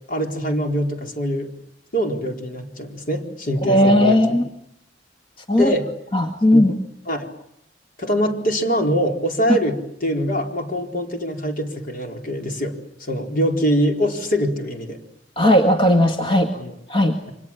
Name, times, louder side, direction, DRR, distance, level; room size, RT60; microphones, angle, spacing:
voice 1, 0.1-1.5 1.9-4.2 5.5-5.9 6.5-6.6 7.1-7.3 8.0-12.7 13.0-15.0 16.5-16.7, equal, 50° left, 3 dB, 4.3 m, -23 dB
voice 2, 3.6-4.5 5.5-5.7 6.1-6.7 9.5-9.6 15.4-16.5 16.9-17.2, left 1 dB, 30° left, 4 dB, 2.1 m, -16 dB
29.5 x 25.5 x 7.4 m, 0.74 s
head